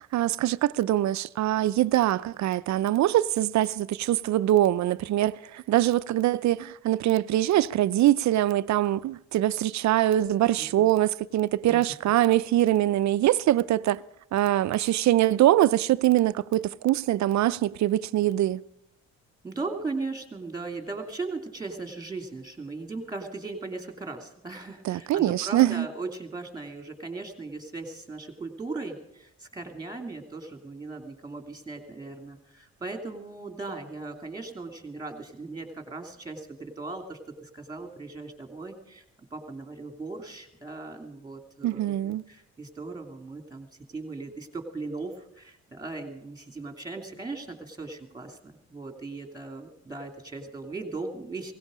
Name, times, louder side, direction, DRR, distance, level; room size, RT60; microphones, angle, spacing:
voice 1, 0.0-14.0 14.3-18.6 24.8-25.9 41.6-42.2, right 13 dB, 65° right, 0.6 m, -23 dB
voice 2, 10.6-10.9 11.7-11.8 19.4-39.0 39.3-51.5, right 3 dB, 15° right, 2.7 m, -38 dB
17.0 x 16.5 x 5.1 m
cardioid pair, 90°, 30 cm